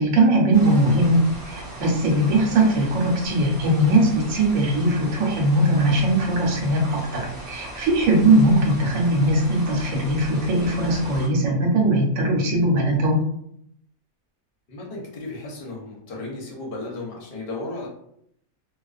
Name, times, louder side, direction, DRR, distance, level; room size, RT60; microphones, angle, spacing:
voice 1, 0.0-13.2, right 1 dB, 70° right, 0 dB, 1.0 m, -20 dB
sound 1, 0.5-11.3, right 1 dB, 20° right, 0.7 m, -38 dB
voice 2, 14.7-17.9, left 2 dB, 50° left, -2 dB, 0.8 m, -34 dB
2.3 x 2.3 x 2.3 m, 0.70 s
omnidirectional pair, 1.6 m